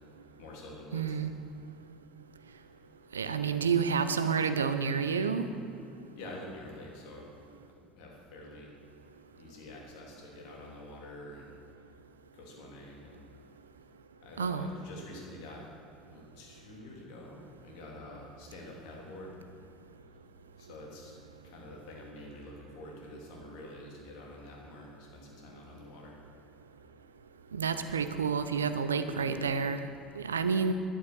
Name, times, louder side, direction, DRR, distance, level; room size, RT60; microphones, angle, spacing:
voice 1, 0.4-1.2 6.1-7.3 7.7-8.7 9.4-11.5 12.3-13.2 14.2-15.7 16.1-19.4 20.6-21.2 21.4-26.2, left 1 dB, 65° left, -1 dB, 3.1 m, -47 dB
voice 2, 0.9-1.3 3.1-5.5 14.4-14.7 27.5-29.9 30.2-30.7, right 6 dB, 85° right, 10 dB, 0.6 m, -29 dB
12.0 x 11.0 x 6.2 m, 2.5 s
figure-of-eight pair, 65°, 0 cm